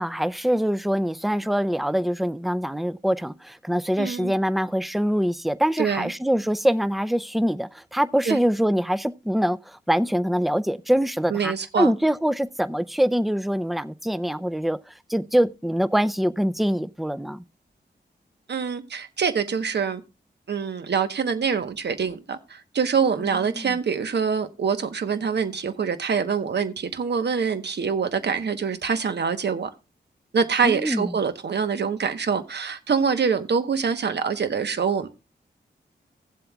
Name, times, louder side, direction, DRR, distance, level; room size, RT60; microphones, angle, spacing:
voice 1, 0.0-17.4 23.2-23.3 23.5-23.8 30.6-31.1, equal, ahead, 0.4 m, -24 dB
voice 2, 4.0-4.3 5.8-6.1 8.3-8.4 11.3-11.9 18.5-20.0 20.5-29.7 30.3-35.1, right 6 dB, 70° right, 1.1 m, -25 dB
17.0 x 7.6 x 2.3 m
wide cardioid pair, 95°, 19 cm